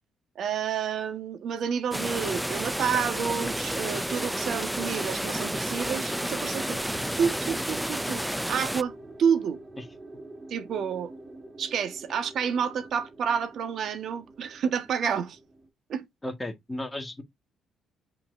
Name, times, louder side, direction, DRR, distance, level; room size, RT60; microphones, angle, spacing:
voice 1, 0.3-6.8 7.2-9.6 10.5-11.1 11.6-15.4 15.9-16.1, right 7 dB, 65° right, 1.4 m, -29 dB
sound 1, 1.9-8.8, equal, 5° right, 0.3 m, -31 dB
sound 2, 2.1-15.7, right 2 dB, 30° right, 2.3 m, -45 dB
voice 2, 16.2-17.2, left 1 dB, 15° left, 1.7 m, -34 dB
6.6 x 5.8 x 2.6 m
cardioid pair, 90°, 0 cm